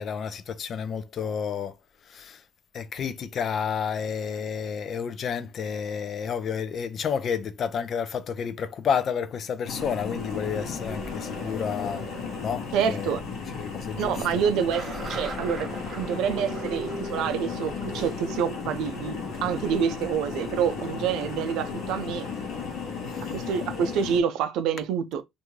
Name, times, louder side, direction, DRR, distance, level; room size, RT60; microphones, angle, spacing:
voice 1, 0.0-1.8 2.1-2.4 2.7-12.0 12.4-13.2 13.6-14.4 23.1-23.3, left 7 dB, 50° left, 0.4 m, -30 dB
sound 1, 9.7-24.2, left 4 dB, 70° left, 1.0 m, -34 dB
voice 2, 12.7-13.2 14.0-15.7 16.0-22.3 23.3-25.2, right 8 dB, 85° right, 0.4 m, -27 dB
sound 2, 14.7-20.3 20.6-20.7 21.1-21.2, right 3 dB, 30° right, 1.1 m, -42 dB
2.5 x 2.2 x 3.0 m
cardioid pair, 125°, 0 cm